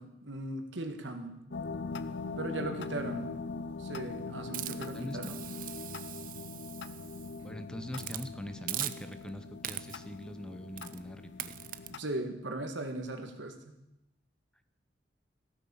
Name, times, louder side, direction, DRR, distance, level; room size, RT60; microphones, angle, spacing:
voice 1, 0.0-1.4 2.4-3.3 3.8-5.4 11.9-13.7, right 2 dB, 80° right, 6 dB, 2.0 m, -38 dB
sound 1, 1.5-12.0, left 4 dB, 70° left, 0.6 m, -41 dB
voice 2, 2.7-3.0 4.9-5.4 7.4-11.6, equal, 5° left, 10 dB, 0.8 m, -43 dB
Hiss, 4.5-7.4 7.9-8.3 8.7-9.3 9.6-10.1 10.8-11.0 11.4-11.9, right 13 dB, 45° right, 0.6 m, -40 dB
15.5 x 9.1 x 7.2 m, 0.87 s
head